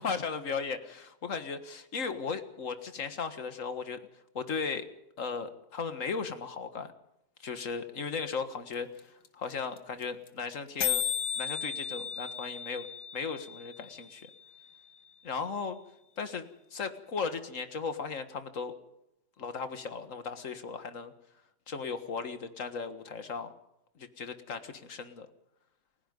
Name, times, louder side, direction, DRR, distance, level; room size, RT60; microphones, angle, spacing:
voice 1, 0.0-4.0 4.4-4.9 5.2-6.9 7.4-8.9 9.3-11.0 11.4-12.9 13.1-14.3 15.2-15.8 16.2-16.5 16.7-18.7 19.4-21.1 21.7-23.5 24.0-25.3, left 5 dB, 45° left, 9 dB, 1.9 m, -36 dB
sound 1, 8.7-8.8 9.0-9.1 9.3-9.5 9.8-9.9 10.0-10.3 10.5-10.6 10.8-14.8, left 8 dB, 85° left, 2.3 m, -35 dB
30.0 x 16.5 x 5.4 m, 0.83 s
omnidirectional pair, 1.9 m